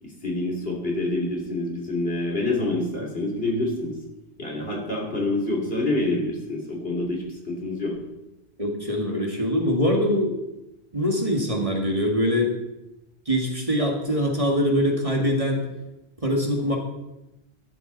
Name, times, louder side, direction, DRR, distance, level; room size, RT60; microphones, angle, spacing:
voice 1, 0.0-3.9 4.4-7.9, left 2 dB, 65° left, -1 dB, 3.4 m, -27 dB
voice 2, 8.6-10.4 10.9-12.5 13.3-15.6 16.2-16.8, equal, 30° right, 0 dB, 2.1 m, -23 dB
13.0 x 12.5 x 4.1 m, 0.92 s
omnidirectional pair, 1.1 m